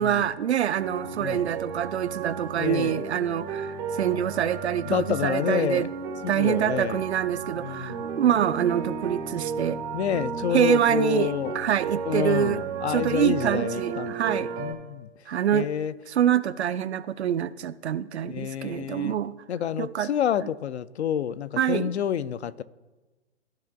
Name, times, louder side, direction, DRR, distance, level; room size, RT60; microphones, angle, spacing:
voice 1, 0.0-5.9 6.3-9.8 10.5-12.6 12.9-14.5 15.3-15.7 16.1-19.4 19.8-20.1 21.6-21.9, right 10 dB, 65° right, 0.5 m, -25 dB
sound 1, 0.7-14.7, right 6 dB, 20° right, 0.5 m, -34 dB
voice 2, 2.6-3.0 4.8-5.9 6.2-7.0 7.6-8.0 9.9-11.5 12.1-15.1 15.5-15.9 18.3-19.2 19.5-22.6, left 9 dB, 65° left, 0.5 m, -28 dB
13.5 x 4.9 x 2.3 m
figure-of-eight pair, 125°, 36 cm